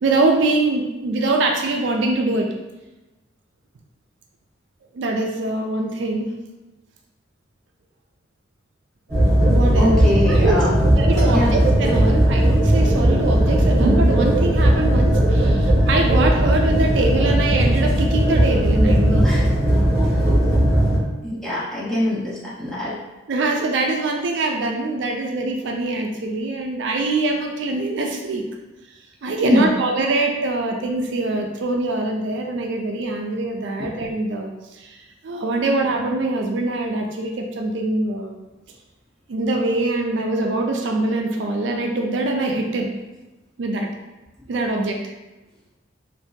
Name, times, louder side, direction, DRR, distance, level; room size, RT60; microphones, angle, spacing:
voice 1, 0.0-2.5 4.9-6.4 9.1-10.0 10.3-19.3 23.3-28.5 29.2-35.0 35.2-38.4 39.3-42.9 43.6-43.9 44.5-45.0, right 2 dB, 65° right, 2 dB, 0.4 m, -23 dB
sound 1, 9.1-21.0, right 1 dB, 20° right, 1.4 m, -17 dB
voice 2, 9.8-10.8 11.3-11.5 19.2-19.4 21.2-23.0 29.4-29.7 33.8-33.9, left 1 dB, 5° left, -10 dB, 0.9 m, -22 dB
3.6 x 2.6 x 2.7 m, 1.1 s
head